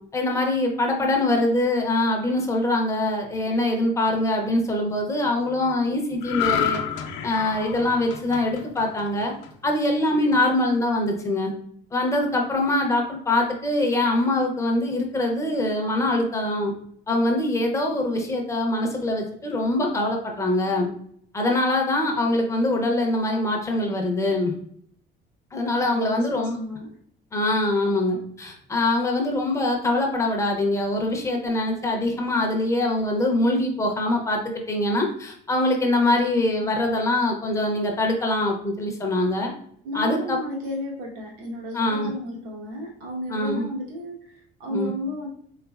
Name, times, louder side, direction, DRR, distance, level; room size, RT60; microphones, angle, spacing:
voice 1, 0.1-6.8 7.2-9.3 9.6-11.5 11.9-16.7 17.1-20.9 21.3-24.5 25.5-26.6 27.3-39.5 39.9-40.4 41.7-42.1 43.3-43.7 44.7-44.9, left 1 dB, 15° left, 1 dB, 0.5 m, -23 dB
voice 2, 0.8-1.3 10.2-10.4 25.8-26.9 36.1-36.2 36.6-36.7 39.8-45.3, left 1 dB, 80° right, -1 dB, 1.2 m, -33 dB
sound 1, 6.2-9.7 10.1-10.3, left 8 dB, 70° left, 0.6 m, -29 dB
4.0 x 3.6 x 2.3 m, 0.63 s
cardioid pair, 170°, 20 cm